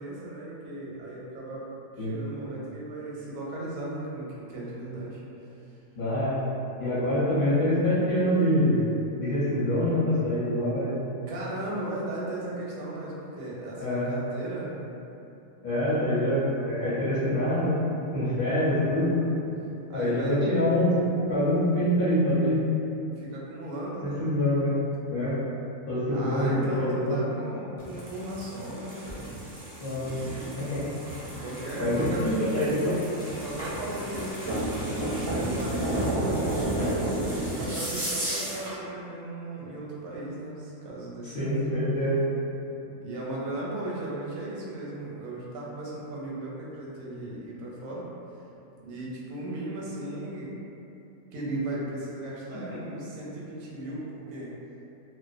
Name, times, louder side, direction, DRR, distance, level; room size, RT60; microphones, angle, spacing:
voice 1, 0.0-5.2 11.3-14.7 15.8-16.0 19.9-20.4 23.2-24.2 26.1-29.3 31.4-32.3 33.4-37.1 37.4-41.6 42.8-48.1 48.8-50.5 51.3-54.5, right 1 dB, 85° right, -5 dB, 1.0 m, -36 dB
voice 2, 5.9-6.4 6.8-8.9 9.2-10.9 13.8-14.1 15.6-17.7 18.1-19.2 19.9-21.0 21.3-22.6 24.2-24.7 25.1-25.3 25.9-27.2 29.8-30.1 30.5-30.8 31.8-33.0 41.2-42.2 52.7-52.8, left 1 dB, 50° left, -12 dB, 0.8 m, -25 dB
sound 1, 27.8-38.8, right 1 dB, 40° right, 0.3 m, -32 dB
2.4 x 2.1 x 2.4 m, 2.8 s
omnidirectional pair, 1.4 m